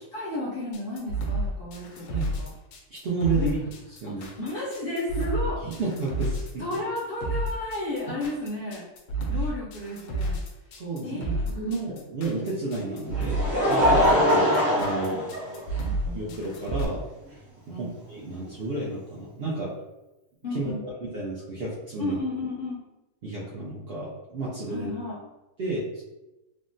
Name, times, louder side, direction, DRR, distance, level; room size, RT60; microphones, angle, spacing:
voice 1, 0.1-2.5 3.3-3.5 4.0-5.6 6.6-8.9 9.3-10.4 11.0-11.3 15.8-16.4 17.7-17.9 20.4-20.8 22.0-22.8 24.7-25.2, left 2 dB, 60° left, -6 dB, 0.6 m, -33 dB
sound 1, 0.7-16.8, right 2 dB, 75° left, 1.0 m, -30 dB
voice 2, 2.9-3.6 4.0-4.3 5.6-6.6 9.3-9.5 10.7-15.2 16.1-17.0 17.8-19.7 20.5-22.2 23.2-24.9 25.6-26.0, right 2 dB, 65° right, -6 dB, 0.6 m, -31 dB
Laughter, 12.8-16.1 16.9-17.0 18.5-18.6, equal, 35° right, 0.9 m, -23 dB
3.5 x 2.0 x 2.5 m, 0.99 s
omnidirectional pair, 1.6 m